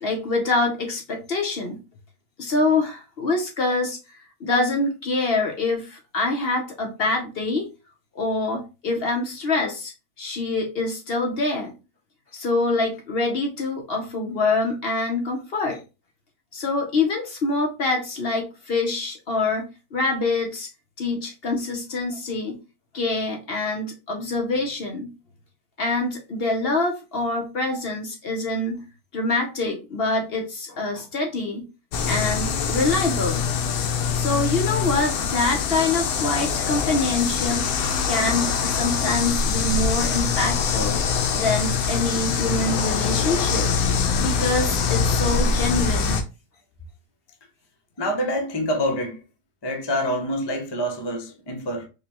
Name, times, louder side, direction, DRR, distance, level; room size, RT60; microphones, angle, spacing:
voice 1, 0.0-1.8 2.4-7.7 8.1-11.7 12.3-15.8 16.5-20.7 21.0-22.6 22.9-25.1 25.8-28.8 29.1-31.7 32.1-33.5 34.1-37.7 38.1-41.0 41.3-43.7 44.2-46.2, left 3 dB, 50° left, 0.8 m, -25 dB
sound 1, 31.9-46.2, left 6 dB, 75° left, 1.0 m, -24 dB
voice 2, 48.0-49.2 49.6-51.9, equal, 35° left, 0.4 m, -26 dB
5.1 x 2.1 x 2.8 m
omnidirectional pair, 1.6 m